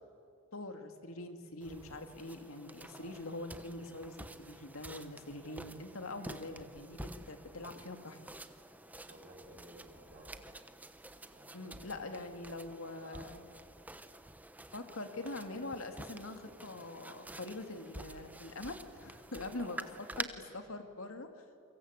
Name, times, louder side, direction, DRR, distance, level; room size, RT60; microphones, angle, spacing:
voice 1, 0.5-8.2 11.5-13.5 14.7-19.8 20.2-21.3, left 2 dB, 80° left, 6 dB, 2.6 m, -44 dB
sound 1, 1.6-20.2, right 1 dB, 10° right, 1.0 m, -49 dB
voice 2, 9.1-10.4 11.3-13.4 19.5-19.9 20.4-20.5, right 2 dB, 45° right, 1 dB, 4.8 m, -55 dB
29.5 x 24.0 x 8.3 m, 2.3 s
head